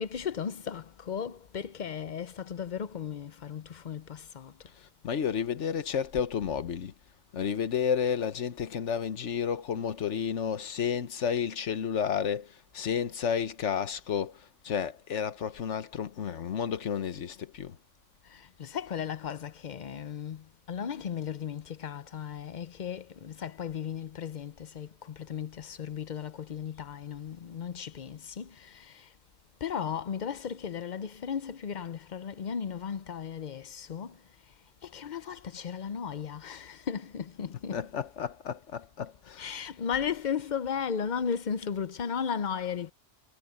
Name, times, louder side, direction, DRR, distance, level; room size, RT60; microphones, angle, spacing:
voice 1, 0.0-4.7 18.2-29.1 29.6-34.5 34.8-37.9 39.4-42.9, left 7 dB, 45° left, 0.7 m, -36 dB
voice 2, 4.8-6.9 7.3-17.8 37.5-39.6, left 7 dB, 85° left, 1.4 m, -31 dB
omnidirectional pair, 1.2 m